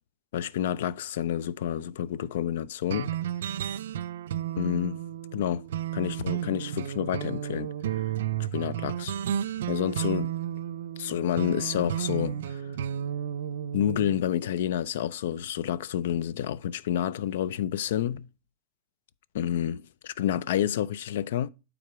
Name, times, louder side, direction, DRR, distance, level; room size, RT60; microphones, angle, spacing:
voice 1, 0.3-3.2 4.6-5.0 5.3-5.6 5.9-8.0 8.5-9.1 9.7-10.3 11.0-12.6 13.7-18.3 19.3-21.5, left 10 dB, 75° left, 0.4 m, -29 dB
sound 1, 2.9-14.2, right 10 dB, 80° right, 0.3 m, -32 dB
8.9 x 3.8 x 4.7 m
hypercardioid pair, 110°, 0 cm